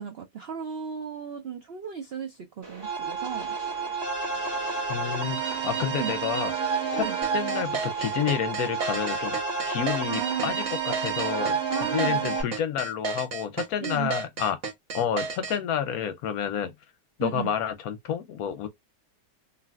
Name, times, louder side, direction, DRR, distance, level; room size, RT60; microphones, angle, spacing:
voice 1, 0.0-3.6 6.0-6.1 6.9-7.2 10.1-10.5 11.3-11.4 11.7-12.2 13.8-14.1 17.2-17.5, right 7 dB, 75° right, 0.5 m, -35 dB
sound 1, 2.6-9.2, right 2 dB, 20° right, 0.8 m, -46 dB
sound 2, 2.8-12.4, right 5 dB, 40° right, 1.7 m, -30 dB
voice 2, 4.9-6.5 6.9-7.1 7.3-9.3 9.7-11.6 11.9-14.6 14.9-16.7 17.2-18.7, left 9 dB, 70° left, 1.0 m, -29 dB
sound 3, 7.2-15.6, right 5 dB, 55° right, 1.3 m, -33 dB
3.2 x 2.7 x 2.3 m
omnidirectional pair, 1.7 m